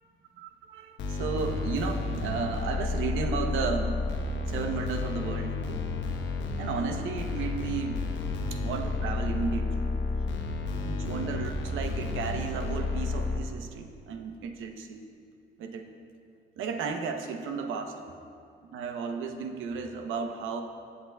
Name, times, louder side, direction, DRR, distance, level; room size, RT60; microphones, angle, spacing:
voice 1, 0.4-4.0 4.5-5.8 6.6-8.0 8.5-9.9 10.8-15.0 15.6-15.9 16.6-18.0 18.7-20.6, right 5 dB, 85° right, 5 dB, 0.9 m, -34 dB
sound 1, 1.0-13.4, left 3 dB, 70° left, 1.0 m, -31 dB
19.5 x 8.5 x 2.3 m, 2.4 s
cardioid pair, 90°, 20 cm